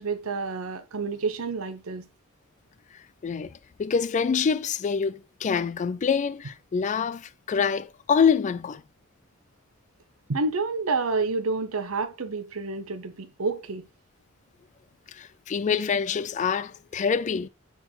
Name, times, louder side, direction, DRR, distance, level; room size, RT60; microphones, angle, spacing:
voice 1, 0.0-2.1 10.3-13.9, right 4 dB, 90° right, 0.8 m, -29 dB
voice 2, 3.8-8.8 15.2-17.5, left 6 dB, 35° left, 0.3 m, -25 dB
6.4 x 3.9 x 4.4 m
head